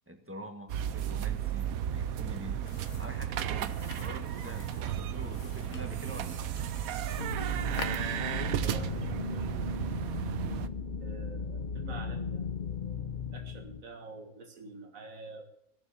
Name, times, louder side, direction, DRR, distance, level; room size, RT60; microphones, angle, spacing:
voice 1, 0.1-2.6 3.0-6.5, equal, 10° right, 5 dB, 1.5 m, -45 dB
sound 1, 0.7-10.7, right 10 dB, 85° right, 1.1 m, -34 dB
sound 2, 2.7-9.0, left 6 dB, 60° left, 1.3 m, -47 dB
sound 3, 7.2-13.8, left 6 dB, 45° left, 0.7 m, -37 dB
voice 2, 8.3-9.7 11.0-13.0 13.3-15.5, right 3 dB, 70° right, 4 dB, 2.1 m, -47 dB
16.5 x 7.1 x 6.9 m, 0.73 s
omnidirectional pair, 1.5 m